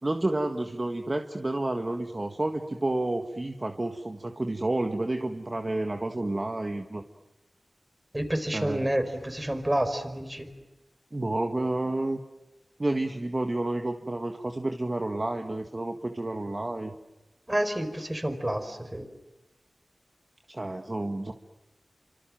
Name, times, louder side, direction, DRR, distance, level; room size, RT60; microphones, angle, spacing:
voice 1, 0.0-7.0 8.5-8.9 11.1-12.2 12.8-17.0 20.5-21.3, right 2 dB, 35° right, 5 dB, 1.7 m, -30 dB
voice 2, 8.1-10.5 17.5-19.1, right 1 dB, 20° right, 8 dB, 4.7 m, -29 dB
29.0 x 26.0 x 7.7 m, 1.0 s
wide cardioid pair, 60°, 0 cm